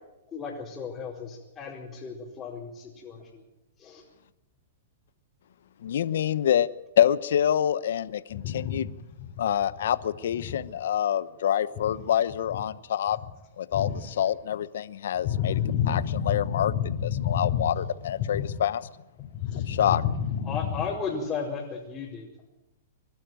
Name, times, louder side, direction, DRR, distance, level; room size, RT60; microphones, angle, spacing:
voice 1, 0.3-3.4 3.8-4.0 20.5-22.3, left 5 dB, 20° left, -6 dB, 4.6 m, -35 dB
voice 2, 5.8-6.7 7.0-8.9 9.4-13.2 13.6-16.7 17.0-18.9 19.6-20.0, left 10 dB, 75° left, 16 dB, 0.9 m, -26 dB
voice 3, 8.4-8.8 13.7-13.9 15.2-17.7 18.2-18.5 19.3-20.7, left 9 dB, 40° left, -2 dB, 3.9 m, -28 dB
24.5 x 12.0 x 9.2 m, 0.99 s
hypercardioid pair, 140°, 0 cm